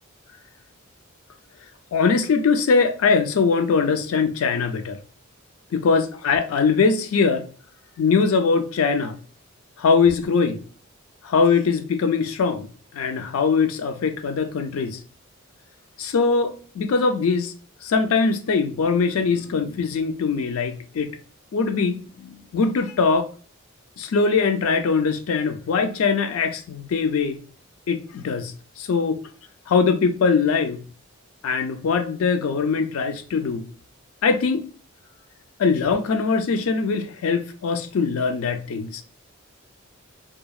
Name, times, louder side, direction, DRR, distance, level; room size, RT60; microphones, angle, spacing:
voice 1, 1.9-5.0 5.7-7.4 8.0-9.2 9.8-10.6 11.3-12.7 12.9-15.0 16.0-17.5 17.8-21.1 21.5-23.3 24.0-27.4 27.9-28.5 28.8-29.2 29.7-30.8 31.4-33.6 34.2-34.7 35.6-39.0, left 5 dB, 75° left, 0.4 m, -21 dB
2.8 x 2.0 x 2.3 m
head